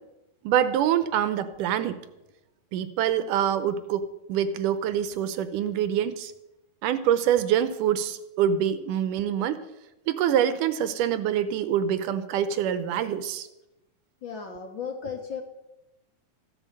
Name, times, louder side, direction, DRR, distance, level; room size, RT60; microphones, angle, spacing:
voice 1, 0.4-2.0 2.7-6.3 6.8-9.6 10.1-13.5, right 9 dB, 75° right, 12 dB, 2.3 m, -25 dB
voice 2, 14.2-15.4, left 6 dB, 50° left, 3 dB, 1.4 m, -35 dB
14.5 x 9.1 x 7.9 m, 0.92 s
omnidirectional pair, 4.0 m